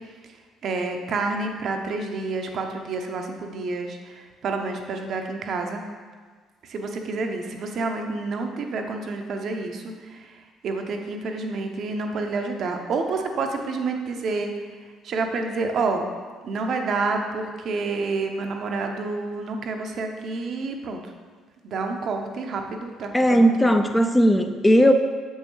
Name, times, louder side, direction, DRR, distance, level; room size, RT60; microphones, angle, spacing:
voice 1, 0.6-5.8 6.6-14.7 15.0-16.1 16.4-21.0 21.6-23.7, right 3 dB, 55° right, 4 dB, 0.7 m, -29 dB
voice 2, 23.1-24.9, equal, 10° left, 6 dB, 0.5 m, -17 dB
6.9 x 5.5 x 3.1 m, 1.5 s
hypercardioid pair, 50°, 0 cm